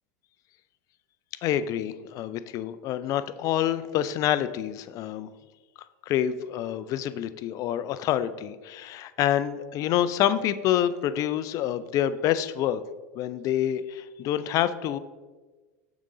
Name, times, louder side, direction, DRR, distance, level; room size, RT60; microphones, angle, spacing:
voice 1, 1.4-5.3 6.1-12.8 13.1-15.0, left 11 dB, 45° left, 13 dB, 0.4 m, -27 dB
6.3 x 3.8 x 4.9 m, 1.3 s
hypercardioid pair, 100°, 8 cm